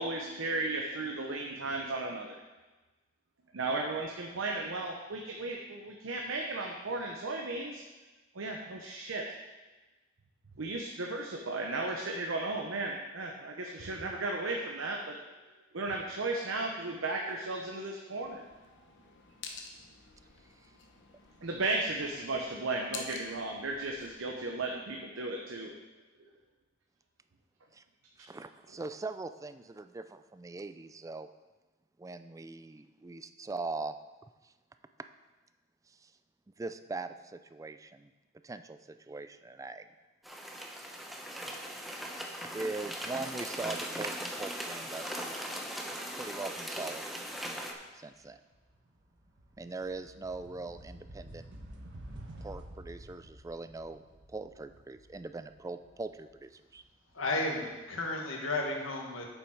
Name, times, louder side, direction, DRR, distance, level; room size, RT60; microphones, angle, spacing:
voice 1, 0.0-2.3 3.5-7.8 8.3-9.2 10.6-15.2 15.7-18.5 21.4-25.7, right 2 dB, 85° right, 1 dB, 0.9 m, -35 dB
sound 1, 18.2-24.2, left 5 dB, 65° left, 1.0 m, -49 dB
voice 2, 28.3-31.3 32.0-33.9 34.4-34.5 35.9-36.1 36.6-38.1 38.4-39.9 42.5-45.4 46.2-47.2 47.9-48.4 49.6-51.5 52.4-54.0 54.3-56.8, right 3 dB, 15° right, 10 dB, 0.3 m, -41 dB
sound 2, 40.2-47.7, equal, ahead, 0.8 m, -39 dB
sound 3, 47.7-47.9 48.3-57.1, right 1 dB, 65° right, 1.4 m, -50 dB
voice 3, 57.1-59.3, left 2 dB, 85° left, 1 dB, 1.6 m, -33 dB
8.2 x 7.0 x 4.7 m, 1.2 s
head